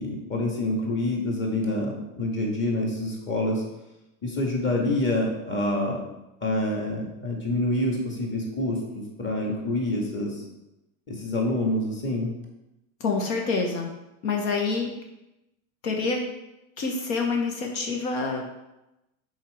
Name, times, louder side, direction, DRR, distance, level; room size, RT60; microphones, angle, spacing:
voice 1, 0.0-3.6 4.2-6.0 6.4-10.4 11.1-12.3, left 1 dB, 25° left, -1 dB, 1.9 m, -27 dB
voice 2, 13.0-13.9 14.2-14.9 15.8-16.2 16.8-18.4, left 4 dB, 80° left, 1 dB, 1.4 m, -26 dB
5.8 x 4.8 x 4.9 m, 0.94 s
supercardioid pair, 130°, 42 cm